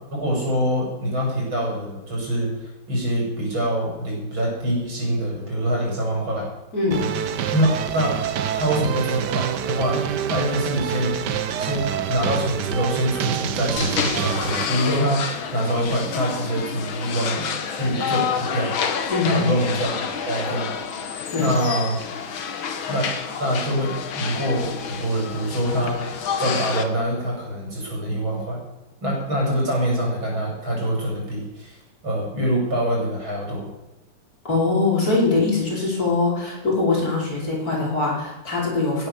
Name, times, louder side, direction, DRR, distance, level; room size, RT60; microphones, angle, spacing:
voice 1, 0.1-6.5 7.5-8.1 8.5-10.0 10.3-18.7 19.2-19.9 20.3-20.7 21.4-22.0 22.9-23.1 23.4-28.6 29.0-31.8 32.0-33.7, equal, 90° right, -2 dB, 7.6 m, -25 dB
voice 2, 6.7-7.1 19.1-19.5 21.3-21.5 34.4-39.1, left 3 dB, 50° left, -3 dB, 5.7 m, -22 dB
sound 1, 6.9-14.7, right 9 dB, 65° right, 1.5 m, -26 dB
sound 2, 13.8-26.8, left 7 dB, 85° left, 2.2 m, -29 dB
17.0 x 10.0 x 7.1 m, 1.0 s
omnidirectional pair, 2.1 m